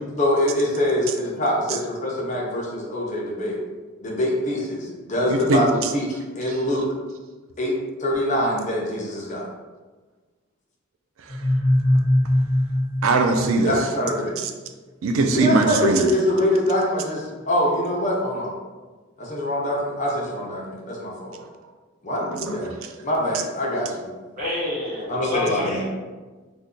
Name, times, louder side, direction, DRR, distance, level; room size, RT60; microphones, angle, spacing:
voice 1, 0.2-3.6 4.0-6.9 7.6-9.5 13.6-14.4 15.3-18.5 19.2-21.4 22.0-22.7 23.0-24.1 25.1-25.8, left 1 dB, 35° left, 0.6 m, -24 dB
voice 2, 5.3-5.9 11.2-11.5 13.0-13.9 14.4-14.5 15.0-16.1 21.4-21.5 22.3-22.9, right 3 dB, 80° right, 0.4 m, -22 dB
sound 1, 11.3-14.1, left 1 dB, 65° right, 1.1 m, -21 dB
voice 3, 24.4-25.8, left 1 dB, 40° right, 1.0 m, -27 dB
2.6 x 2.2 x 3.6 m
head